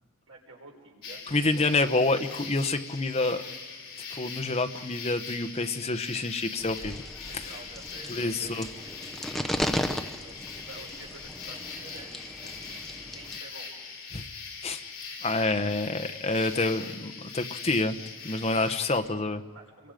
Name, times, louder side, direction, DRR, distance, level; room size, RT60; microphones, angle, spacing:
voice 1, 0.3-1.2 7.2-13.7 15.4-15.8 19.5-19.9, right 3 dB, 85° right, -1 dB, 6.1 m, -50 dB
sound 1, 1.0-19.0, left 5 dB, 50° left, 5.5 m, -41 dB
voice 2, 1.3-3.4 4.1-7.0 8.1-8.7 14.1-14.2 14.6-14.8 15.2-18.0 18.2-19.4, left 2 dB, 30° left, 8 dB, 1.0 m, -27 dB
sound 2, 6.6-13.4, equal, ahead, 0.8 m, -36 dB
29.0 x 24.0 x 5.2 m, 1.5 s
head